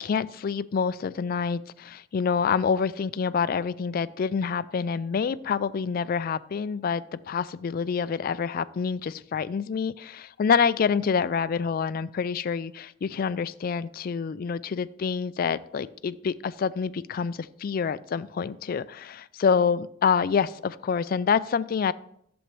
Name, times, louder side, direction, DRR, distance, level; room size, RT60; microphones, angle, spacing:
voice 1, 0.0-21.9, left 6 dB, 50° left, 16 dB, 0.3 m, -27 dB
11.0 x 7.1 x 3.1 m, 0.70 s
head